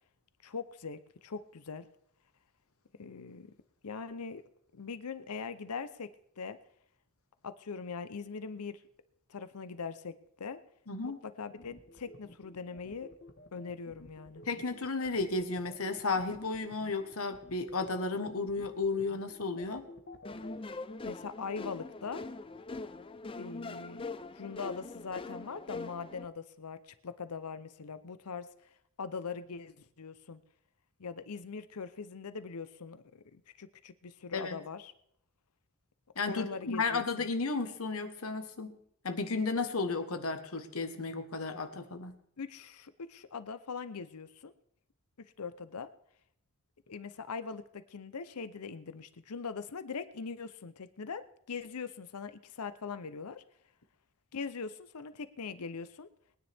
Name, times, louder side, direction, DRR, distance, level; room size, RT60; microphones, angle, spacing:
voice 1, 0.4-1.9 3.0-3.5 3.8-4.4 4.7-6.6 7.4-8.8 9.3-10.6 11.0-13.1 13.5-14.4 21.1-22.2 23.4-28.5 29.0-30.4 31.0-34.9 36.3-37.3 42.4-44.5 45.4-45.9 46.9-53.4 54.3-56.1, left 5 dB, 85° left, 13 dB, 0.7 m, -41 dB
voice 2, 10.9-11.2 14.5-19.9 34.3-34.6 36.1-38.8 39.0-42.1, left 3 dB, 70° left, 8 dB, 1.3 m, -33 dB
sound 1, 11.6-20.6, left 1 dB, 50° left, 1.3 m, -51 dB
sound 2, 20.2-26.2, left 3 dB, 25° left, 0.5 m, -42 dB
22.0 x 9.9 x 3.5 m, 0.70 s
head